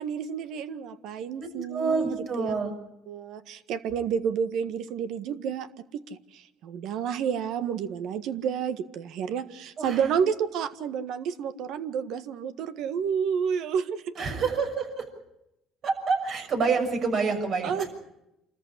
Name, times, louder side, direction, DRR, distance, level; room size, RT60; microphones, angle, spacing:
voice 1, 0.0-2.5 3.1-5.7 5.9-14.0 17.6-17.9, right 7 dB, 70° right, 11 dB, 1.6 m, -30 dB
voice 2, 1.4-2.7 9.8-10.0 14.1-15.0 15.8-17.9, right 4 dB, 55° right, 4 dB, 6.5 m, -27 dB
27.5 x 14.0 x 9.8 m, 0.88 s
cardioid pair, 95°, 0 cm